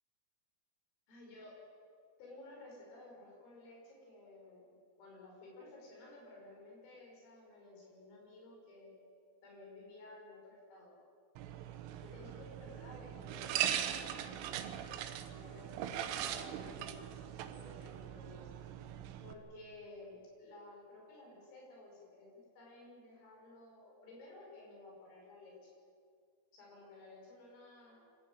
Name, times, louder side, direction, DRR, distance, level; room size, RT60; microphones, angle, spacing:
voice 1, 1.1-1.6 2.2-9.0 9.4-10.9 12.0-18.4 18.8-25.7 26.5-28.0, left 2 dB, 80° left, -2 dB, 8.9 m, -55 dB
sound 1, 11.4-19.3, right 10 dB, 80° right, 3.5 m, -40 dB
26.0 x 13.5 x 9.2 m, 2.3 s
omnidirectional pair, 5.9 m